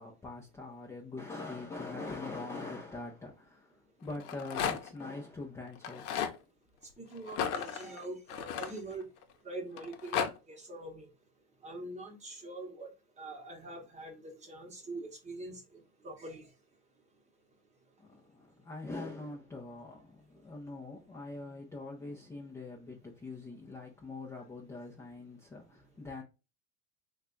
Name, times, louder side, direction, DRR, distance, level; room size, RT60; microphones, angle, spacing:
voice 1, 0.0-6.1 18.0-26.2, left 3 dB, 5° left, 0.4 m, -43 dB
Rattle, 4.1-5.0 5.8-6.4 7.3-9.2 9.8-10.3, left 8 dB, 75° left, 0.7 m, -34 dB
voice 2, 7.0-9.1 9.4-11.1 11.6-12.9 13.2-16.5, right 2 dB, 15° right, 0.9 m, -44 dB
3.2 x 2.3 x 3.7 m
supercardioid pair, 125°, 44 cm